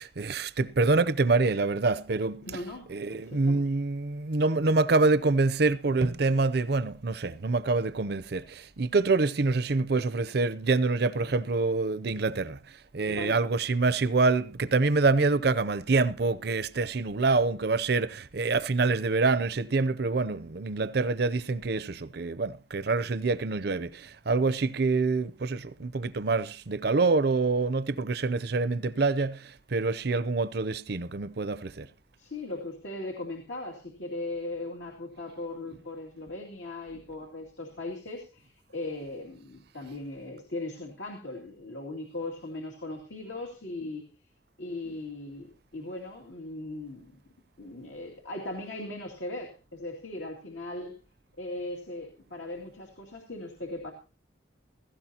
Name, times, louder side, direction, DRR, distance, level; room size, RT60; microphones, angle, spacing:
voice 1, 0.0-2.5 2.9-12.6 12.9-31.9, right 3 dB, 55° right, 0.6 m, -26 dB
voice 2, 2.4-2.9 3.1-3.6 13.1-13.4 32.2-44.1 44.6-47.1 47.6-51.0 51.4-53.9, left 2 dB, 75° left, 2.5 m, -38 dB
16.5 x 15.5 x 2.9 m
head